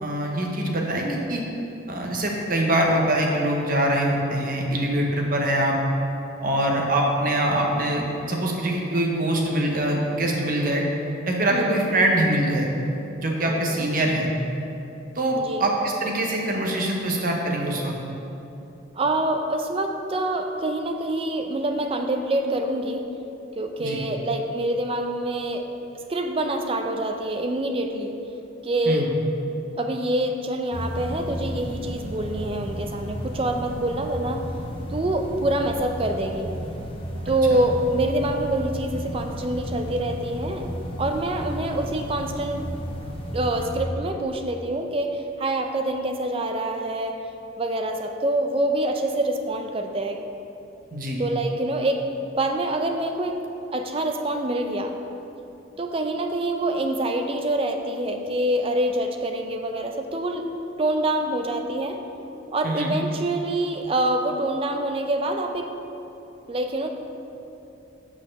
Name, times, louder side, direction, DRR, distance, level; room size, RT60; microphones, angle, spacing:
voice 1, 0.0-1.4 1.9-5.8 6.4-10.8 11.3-12.7 13.2-14.3 15.1-17.9 23.8-24.0 28.9-29.1 37.5-37.6 50.9-51.2 62.6-62.9, right 1 dB, 45° right, 0 dB, 0.9 m, -23 dB
voice 2, 11.5-11.9 13.5-13.9 15.4-15.7 19.0-23.1 23.6-25.7 26.1-28.2 28.6-29.1 29.8-34.4 34.9-36.6 37.3-40.7 41.0-42.6 43.3-47.2 47.6-50.2 51.2-52.0 52.4-53.4 53.7-55.0 55.8-60.5 60.8-62.0 62.5-65.7 66.5-66.9, right 1 dB, 30° right, 5 dB, 0.4 m, -26 dB
sound 1, 30.7-43.8, equal, 30° left, 0.8 m, -33 dB
6.2 x 4.2 x 6.5 m, 2.9 s
head